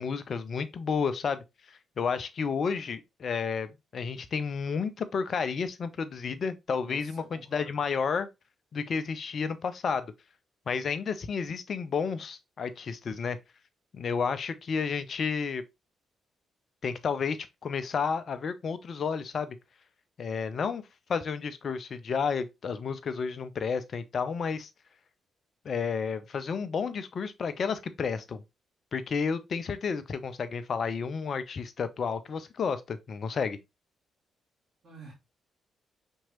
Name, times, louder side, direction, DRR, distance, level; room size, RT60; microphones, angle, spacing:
voice 1, 0.0-8.3 8.7-10.1 10.7-13.4 13.9-15.6 16.8-19.6 20.2-20.8 21.1-24.7 25.6-28.4 28.9-33.6, left 5 dB, 55° left, 0.6 m, -31 dB
voice 2, 6.9-7.8 34.8-35.1, right 3 dB, 65° right, 2.2 m, -49 dB
5.4 x 3.0 x 2.8 m
hypercardioid pair, 45°, 0 cm